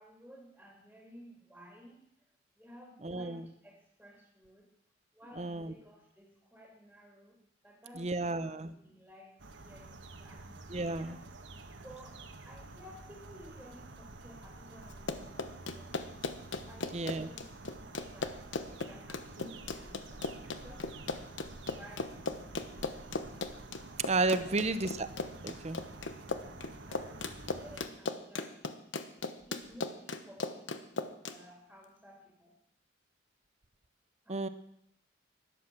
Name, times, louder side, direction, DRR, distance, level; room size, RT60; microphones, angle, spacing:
voice 1, 0.0-2.0 2.6-4.7 5.1-7.4 7.6-8.4 8.6-11.2 11.8-15.4 15.7-17.5 18.1-18.4 18.8-21.0 21.6-23.0 24.3-24.7 26.9-28.6 29.5-32.6 34.2-34.5, equal, 5° right, 0 dB, 2.6 m, -55 dB
voice 2, 3.0-3.5 5.4-5.7 8.0-8.7 10.7-11.2 16.9-17.3 24.1-25.1 25.4-25.8 34.3-34.5, right 2 dB, 35° right, 12 dB, 0.7 m, -32 dB
sound 1, 9.4-27.9, right 2 dB, 75° right, 1.4 m, -49 dB
Run, 14.9-31.4, left 3 dB, 80° left, 1.1 m, -37 dB
12.0 x 11.0 x 7.5 m, 0.72 s
head